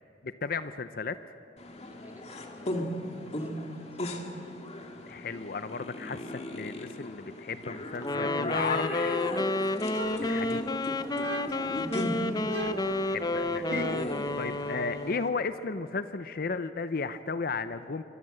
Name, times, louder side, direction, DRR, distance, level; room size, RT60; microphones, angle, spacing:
voice 1, 0.2-1.2 5.1-9.2 10.2-10.7 13.1-18.0, left 4 dB, 55° left, 12 dB, 0.6 m, -34 dB
sound 1, 1.6-15.3, left 1 dB, 40° left, 2.2 m, -37 dB
voice 2, 1.8-4.2 11.3-12.4, equal, 10° right, 1 dB, 3.3 m, -56 dB
Wind instrument woodwind instrument, 8.0-15.2, left 2 dB, 25° left, 0.8 m, -31 dB
sound 2, 9.9-10.8 11.2-11.8 12.5-14.2, right 2 dB, 75° right, 1.6 m, -38 dB
26.5 x 24.0 x 7.8 m, 2.8 s
head